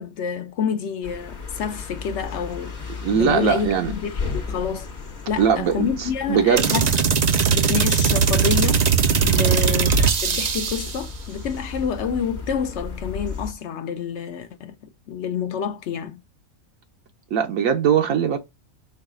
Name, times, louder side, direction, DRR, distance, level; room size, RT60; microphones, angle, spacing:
voice 1, 0.0-4.9 5.3-6.9 7.5-8.8 9.4-9.9 10.2-14.7 15.1-16.2, left 7 dB, 65° left, 0.8 m, -28 dB
sound 1, 1.0-13.5, left 4 dB, 40° left, 0.9 m, -35 dB
voice 2, 3.0-3.9 5.4-6.7 9.2-9.6 17.3-18.4, right 7 dB, 80° right, 1.0 m, -21 dB
sound 2, 6.6-11.0, right 6 dB, 60° right, 0.4 m, -19 dB
4.7 x 2.3 x 4.8 m
omnidirectional pair, 1.4 m